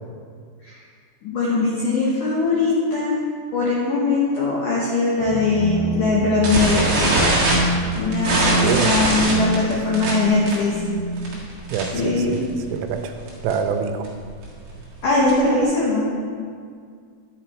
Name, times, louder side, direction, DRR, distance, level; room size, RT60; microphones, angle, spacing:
voice 1, 1.2-3.2 3.5-6.9 7.5-10.8 11.9-12.4 15.0-16.1, left 3 dB, 85° left, -5 dB, 1.8 m, -21 dB
sound 1, 5.2-12.9, right 2 dB, 70° right, 3.2 m, -28 dB
sound 2, 6.4-12.1 12.3-12.6 12.9-13.0 13.3-13.5 14.0-15.6, right 1 dB, 55° right, 2.1 m, -22 dB
voice 2, 8.6-8.9 11.7-12.4 12.7-13.2 13.4-14.1, right 7 dB, 90° right, 7 dB, 3.2 m, -25 dB
11.0 x 7.5 x 4.4 m, 2.1 s
omnidirectional pair, 5.7 m